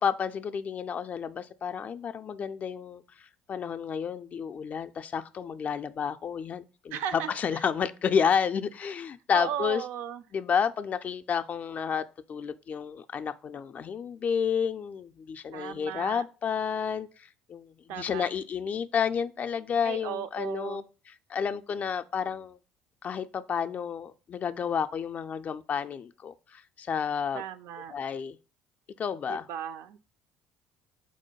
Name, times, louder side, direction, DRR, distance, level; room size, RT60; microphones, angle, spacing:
voice 1, 0.0-9.8 10.3-20.8 21.3-22.6 23.0-27.4 27.9-28.4 29.0-29.5, left 7 dB, 40° left, 0.4 m, -31 dB
voice 2, 6.9-7.6 9.3-10.2 15.5-16.2 17.9-18.2 19.8-20.8 27.3-27.9 29.3-30.0, right 9 dB, 60° right, 0.4 m, -36 dB
4.2 x 2.2 x 4.5 m
hypercardioid pair, 60°, 4 cm